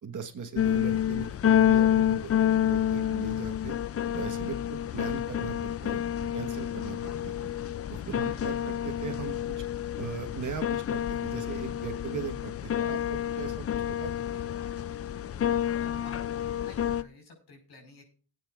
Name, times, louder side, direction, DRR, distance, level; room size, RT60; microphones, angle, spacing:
voice 1, 0.0-3.7 4.1-7.3 7.9-9.4 10.0-14.1, right 6 dB, 50° right, 5 dB, 1.4 m, -39 dB
sound 1, 0.6-17.0, left 10 dB, 35° left, 0.4 m, -28 dB
voice 2, 8.1-8.7 15.7-16.2 16.5-18.0, left 2 dB, 70° left, 2 dB, 5.1 m, -52 dB
20.5 x 9.1 x 2.5 m, 0.38 s
cardioid pair, 95°, 40 cm